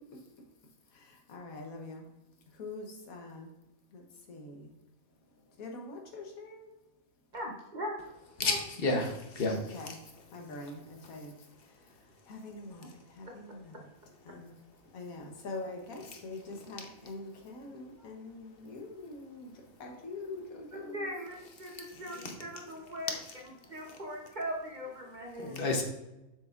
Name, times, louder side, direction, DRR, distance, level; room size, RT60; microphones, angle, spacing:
voice 1, 0.0-2.1 2.4-3.5 3.9-4.7 5.3-6.7 9.5-13.9 14.2-14.6 14.9-21.1, left 2 dB, 85° left, 2 dB, 1.5 m, -45 dB
voice 2, 7.3-8.0 8.4-8.6 20.9-23.2 23.7-25.6, equal, 40° right, 0 dB, 0.9 m, -39 dB
voice 3, 8.4-9.8 21.9-22.4 25.4-25.8, left 2 dB, 45° left, 2 dB, 1.1 m, -31 dB
7.3 x 6.0 x 2.4 m, 0.97 s
omnidirectional pair, 1.4 m